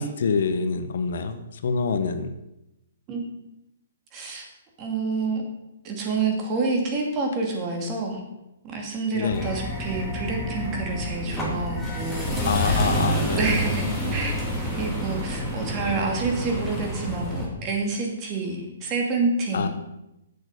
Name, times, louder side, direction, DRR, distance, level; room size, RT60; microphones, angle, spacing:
voice 1, 0.0-2.3 9.1-9.4 12.4-13.4 19.5-19.7, left 5 dB, 65° left, 9 dB, 1.0 m, -26 dB
voice 2, 4.1-4.5 4.8-5.4 5.8-8.2 8.6-12.9 13.4-14.3 14.6-19.7, right 3 dB, 30° right, 1 dB, 2.6 m, -28 dB
sound 1, 9.3-17.5, equal, ahead, 2.7 m, -28 dB
8.4 x 6.5 x 6.6 m, 0.90 s
hypercardioid pair, 140°, 0 cm